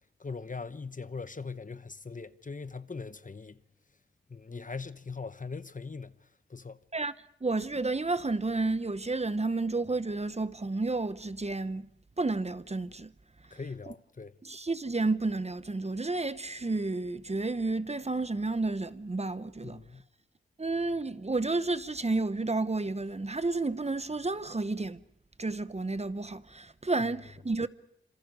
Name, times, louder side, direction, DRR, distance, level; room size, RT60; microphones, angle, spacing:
voice 1, 0.2-3.6 4.3-6.2 6.5-6.8 13.5-14.3 19.6-20.1, left 4 dB, 40° left, 0.9 m, -40 dB
voice 2, 7.4-11.9 12.2-13.1 14.4-19.8 20.6-25.0 25.4-27.7, right 3 dB, 30° right, 0.9 m, -31 dB
27.5 x 27.0 x 5.2 m
wide cardioid pair, 65°, 21 cm